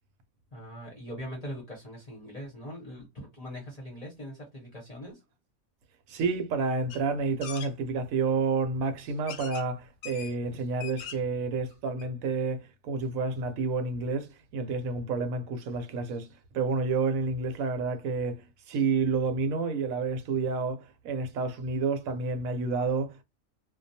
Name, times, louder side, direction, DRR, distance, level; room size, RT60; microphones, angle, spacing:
voice 1, 0.5-5.2, equal, 35° left, 0.7 m, -41 dB
voice 2, 6.1-23.2, right 4 dB, 75° right, 1.0 m, -30 dB
sound 1, 6.9-7.0 7.4-7.7 8.6-8.7 9.3-9.7 10.0-10.3 10.7-11.3 11.7-11.8 12.0-12.1, left 8 dB, 75° left, 1.0 m, -41 dB
2.3 x 2.2 x 2.6 m
omnidirectional pair, 1.5 m